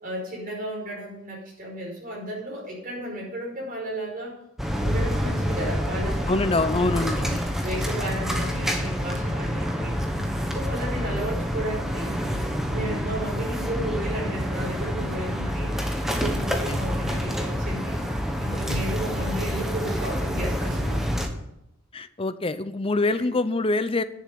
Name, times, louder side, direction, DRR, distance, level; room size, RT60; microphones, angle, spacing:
voice 1, 0.0-4.4 4.8-6.4 6.7-7.1 7.6-9.9 10.5-12.2 12.7-15.7 16.1-18.0 18.4-21.0, right 1 dB, 45° right, -2 dB, 5.4 m, -33 dB
sound 1, 4.6-21.3, equal, ahead, 1.3 m, -27 dB
voice 2, 6.3-7.4 16.7-16.8 18.5-18.8 21.9-24.0, left 2 dB, 25° left, 13 dB, 0.6 m, -25 dB
10.5 x 7.2 x 8.6 m, 0.82 s
head